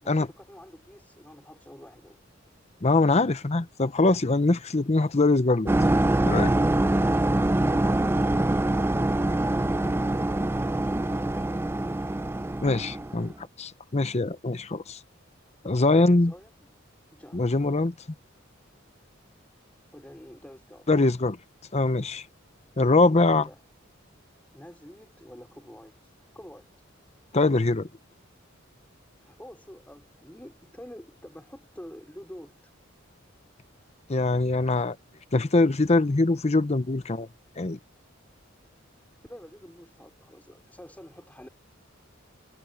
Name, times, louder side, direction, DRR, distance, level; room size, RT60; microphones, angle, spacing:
voice 1, 0.0-2.2 10.8-11.5 16.0-16.7 17.1-17.5 19.9-20.9 23.1-23.6 24.5-26.8 29.2-32.7 39.3-41.5, equal, 10° left, 2.9 m, -47 dB
voice 2, 2.8-5.7 6.2-6.5 12.6-13.3 13.6-15.0 15.6-16.3 17.3-17.9 20.9-21.4 21.7-22.2 22.8-23.4 27.3-27.9 34.1-35.0 35.3-37.3 37.6-37.8, left 2 dB, 35° left, 0.7 m, -23 dB
sound 1, 5.7-13.3, right 1 dB, 10° right, 0.4 m, -24 dB
head